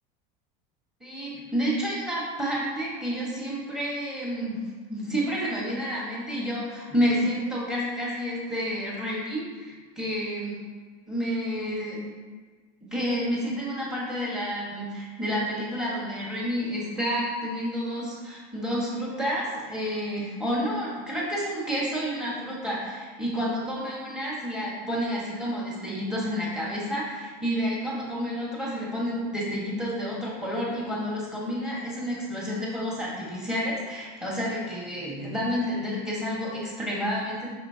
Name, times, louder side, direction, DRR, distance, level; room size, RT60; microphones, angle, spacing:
voice 1, 1.0-4.6 4.9-10.6 11.1-12.0 12.8-37.5, equal, 5° right, -5 dB, 1.5 m, -30 dB
8.6 x 6.4 x 2.9 m, 1.4 s
cardioid pair, 175°, 20 cm